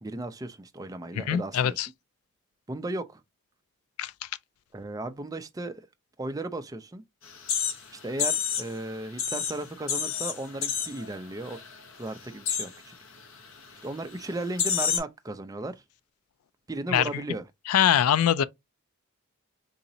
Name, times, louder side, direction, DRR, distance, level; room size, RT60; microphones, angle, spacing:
voice 1, 0.0-1.8 2.7-3.2 4.7-5.9 6.2-7.0 7.9-11.6 12.0-12.9 13.8-15.8 16.7-17.4, right 2 dB, 15° right, 0.4 m, -35 dB
voice 2, 1.3-1.9 4.0-4.1 16.9-17.1 17.7-18.4, left 9 dB, 85° left, 0.3 m, -22 dB
sound 1, 7.3-8.8 9.1-11.1 11.4-11.8 12.0-12.8 13.4-13.6 14.1-14.2 14.6-15.0, left 7 dB, 65° left, 0.9 m, -29 dB
3.9 x 2.9 x 2.6 m
head